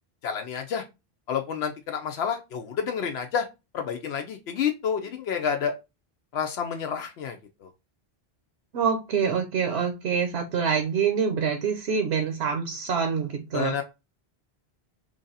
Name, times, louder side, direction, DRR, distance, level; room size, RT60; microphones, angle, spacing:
voice 1, 0.2-0.8 1.3-3.5 3.7-5.7 6.3-7.7 13.5-13.8, left 7 dB, 80° left, 0.8 m, -29 dB
voice 2, 8.7-13.7, right 6 dB, 75° right, 0.9 m, -26 dB
3.2 x 2.6 x 3.9 m
omnidirectional pair, 1.1 m